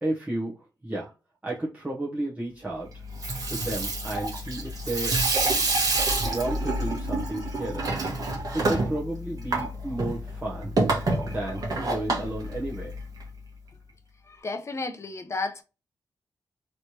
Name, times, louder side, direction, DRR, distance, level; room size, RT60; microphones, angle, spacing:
voice 1, 0.0-1.1 1.4-3.0 3.5-5.2 6.2-7.9 8.5-10.8 11.2-13.0, right 1 dB, 20° right, 0.9 m, -32 dB
Water tap faucet / Sink (filling or washing), 3.0-13.2, right 2 dB, 50° right, 1.2 m, -28 dB
voice 2, 14.3-15.6, left 3 dB, 35° left, 0.6 m, -32 dB
3.2 x 3.0 x 2.8 m
cardioid pair, 85°, 8 cm